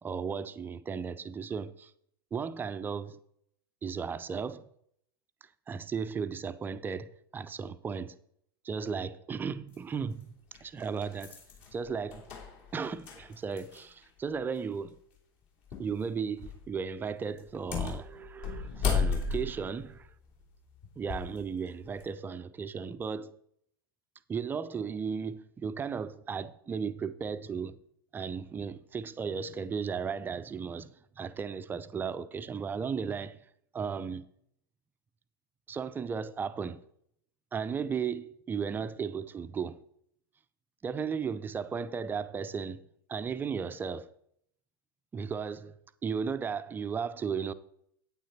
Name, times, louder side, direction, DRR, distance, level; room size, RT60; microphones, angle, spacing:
voice 1, 0.0-1.9 2.3-3.2 3.8-4.7 5.7-8.2 8.6-10.3 10.6-11.4 11.7-12.3 12.7-15.0 15.8-20.1 21.0-23.4 24.3-27.8 28.1-33.5 33.7-34.3 35.7-36.8 37.5-39.8 40.8-42.8 43.1-44.1 45.1-47.5, right 6 dB, 15° right, 0.5 m, -35 dB
sound 1, 9.7-9.8 10.5-14.0 14.3-14.4 15.7-16.0 16.4-16.7 17.4-21.4 21.8-22.1, left 6 dB, 45° left, 3.1 m, -34 dB
9.2 x 9.0 x 4.1 m
figure-of-eight pair, 90°, 13 cm